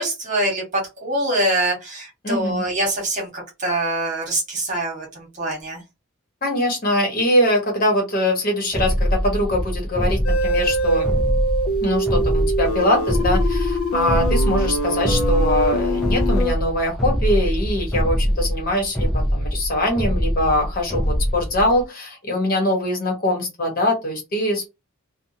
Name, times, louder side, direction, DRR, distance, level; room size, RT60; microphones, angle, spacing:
voice 1, 0.0-5.8, right 1 dB, 35° right, -1 dB, 1.3 m, -24 dB
voice 2, 2.2-2.6 6.4-11.1 11.8-24.7, left 1 dB, 40° left, 0 dB, 1.1 m, -22 dB
sound 1, 8.7-21.8, equal, ahead, 0.5 m, -23 dB
sound 2, 10.2-16.5, right 1 dB, 80° left, 0.4 m, -24 dB
2.7 x 2.2 x 2.6 m, 0.24 s
head